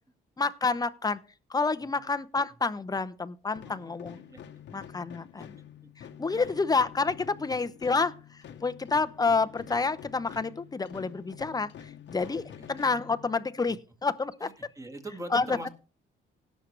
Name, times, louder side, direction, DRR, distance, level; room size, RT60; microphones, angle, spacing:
voice 1, 0.4-1.2 1.5-4.2 4.7-5.6 6.0-12.4 12.7-14.5 15.3-15.7, left 4 dB, 20° left, 12 dB, 0.7 m, -29 dB
sound 1, 3.5-13.7, left 9 dB, 65° left, 1.1 m, -47 dB
voice 2, 3.7-4.0 4.2-4.4 5.4-5.5 6.3-6.6 7.4-7.5 12.2-12.7 13.7-13.8 14.4-15.7, right 1 dB, 15° right, 3 dB, 2.0 m, -44 dB
17.5 x 6.4 x 3.3 m, 0.35 s
cardioid pair, 90°, 20 cm